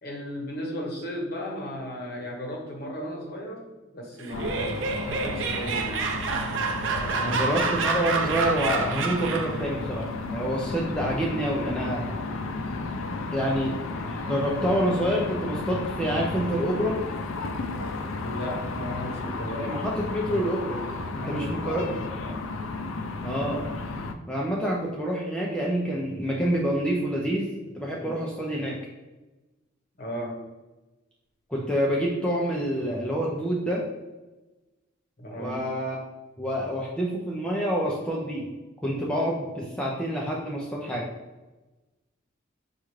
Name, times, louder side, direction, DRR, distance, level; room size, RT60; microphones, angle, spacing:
voice 1, 0.0-6.1 7.0-7.7 18.1-19.7 21.2-22.4 27.9-28.3 30.0-30.4 35.2-35.7, equal, 50° left, -1 dB, 0.9 m, -36 dB
Laughter, 4.2-9.7, right 4 dB, 75° right, 0.5 m, -28 dB
sound 1, 4.3-24.1, left 3 dB, 85° left, 0.4 m, -33 dB
voice 2, 7.2-12.1 13.3-13.8 14.0-17.0 19.5-20.8 21.1-21.9 23.2-23.7 24.3-27.5 27.7-28.7 31.5-33.8 35.4-36.0 36.4-38.5 38.8-41.0, equal, 5° left, -4 dB, 0.5 m, -27 dB
5.5 x 2.4 x 3.1 m, 1.1 s
head